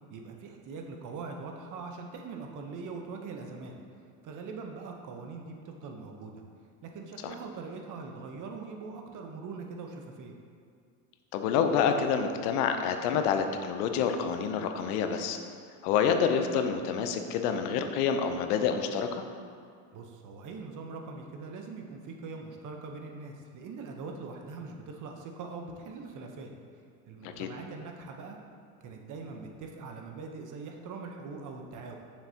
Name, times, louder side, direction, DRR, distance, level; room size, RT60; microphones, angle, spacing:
voice 1, 0.1-3.7 4.2-6.4 6.8-10.3 19.9-26.5 27.1-28.4 28.8-32.0, right 4 dB, 45° right, 3 dB, 0.8 m, -42 dB
voice 2, 11.3-15.4 15.8-19.2 27.2-27.5, left 7 dB, 80° left, 7 dB, 0.7 m, -28 dB
6.6 x 5.9 x 2.8 m, 2.2 s
supercardioid pair, 100°, 44 cm